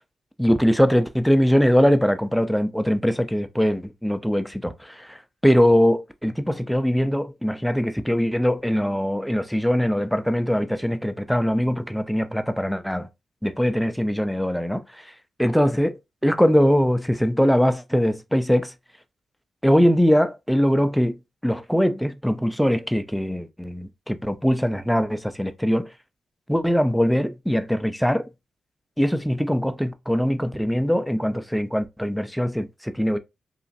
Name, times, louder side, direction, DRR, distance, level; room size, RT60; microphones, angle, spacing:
voice 1, 0.4-13.1 13.4-15.1 15.4-18.7 19.6-21.1 21.4-25.9 26.5-28.3 29.0-33.2, equal, ahead, 0.3 m, -22 dB
3.0 x 2.4 x 2.5 m
cardioid pair, 100°, 0 cm